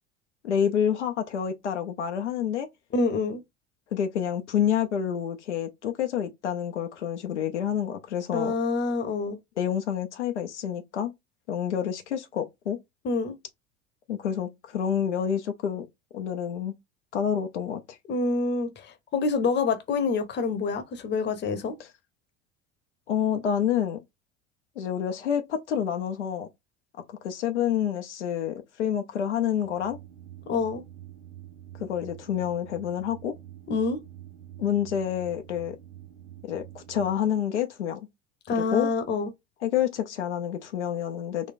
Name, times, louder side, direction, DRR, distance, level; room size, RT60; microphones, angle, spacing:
voice 1, 0.4-2.7 3.9-8.5 9.6-11.1 11.5-12.8 14.1-15.9 16.1-16.7 17.1-18.0 23.1-24.0 24.8-26.5 27.2-30.0 31.8-33.3 34.6-35.8 36.4-38.0 38.5-38.9 39.6-41.5, left 9 dB, 80° left, 0.7 m, -28 dB
voice 2, 2.9-3.4 8.3-9.4 13.0-13.4 18.1-21.7 30.5-30.8 33.7-34.0 38.5-39.3, left 4 dB, 30° left, 0.9 m, -27 dB
sound 1, 29.6-37.2, right 12 dB, 75° right, 1.0 m, -46 dB
4.1 x 2.2 x 2.5 m
figure-of-eight pair, 70°, 34 cm